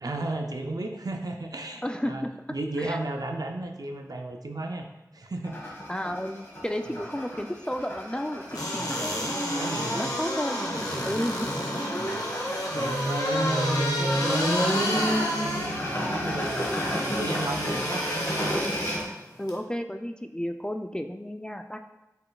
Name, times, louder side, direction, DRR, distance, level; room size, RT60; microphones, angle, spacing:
voice 1, 0.0-2.2 2.5-4.9 5.1-5.8 8.7-9.0 9.5-10.2 11.0-11.2 12.0-12.2 12.7-18.5, right 2 dB, 80° right, 4 dB, 0.5 m, -34 dB
voice 2, 1.8-2.3 2.8-3.0 5.9-9.4 9.8-10.6 11.1-11.5 19.4-21.8, equal, 15° left, 6 dB, 0.3 m, -32 dB
sound 1, 5.4-19.0, equal, 40° left, 1.5 m, -34 dB
sound 2, 8.5-19.0 19.5-19.6, equal, 85° left, 0.8 m, -29 dB
5.3 x 4.0 x 2.3 m, 1.0 s
wide cardioid pair, 45°, 6 cm